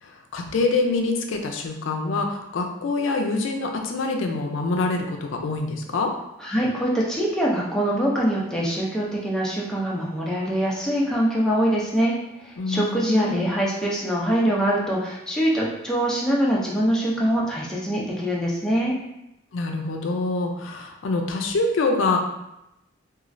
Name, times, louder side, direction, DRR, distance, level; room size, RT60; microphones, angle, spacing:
voice 1, 0.0-6.1 12.6-13.4 19.5-22.2, left 3 dB, 90° left, 3 dB, 0.4 m, -25 dB
voice 2, 6.4-12.1 12.4-19.0, equal, 5° left, -5 dB, 0.4 m, -23 dB
3.0 x 2.4 x 2.5 m, 0.88 s
head